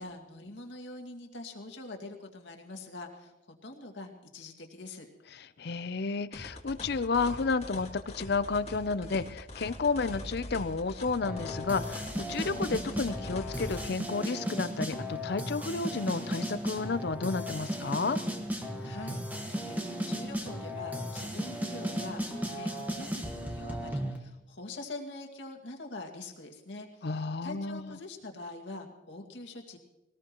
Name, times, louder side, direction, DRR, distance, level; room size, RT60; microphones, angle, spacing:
voice 1, 0.0-3.3 3.6-5.1 18.8-29.8, left 2 dB, 75° left, 2 dB, 2.1 m, -44 dB
voice 2, 5.3-18.2 27.0-27.8, left 4 dB, 60° left, 13 dB, 0.6 m, -31 dB
sound 1, 6.3-13.8, left 1 dB, 35° left, 2.1 m, -43 dB
sound 2, 11.2-24.2, equal, 10° right, 1.4 m, -35 dB
23.0 x 18.5 x 3.0 m, 0.98 s
head